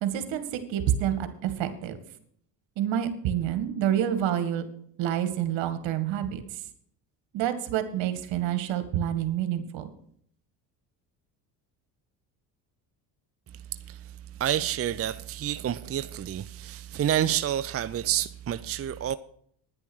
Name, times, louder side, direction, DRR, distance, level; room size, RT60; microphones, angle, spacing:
voice 1, 0.0-2.0 2.8-4.6 5.0-6.4 7.3-9.9, right 10 dB, 70° right, 2.1 m, -28 dB
voice 2, 14.4-19.2, right 11 dB, 30° right, 0.6 m, -28 dB
10.0 x 10.0 x 6.3 m
supercardioid pair, 75°, 47 cm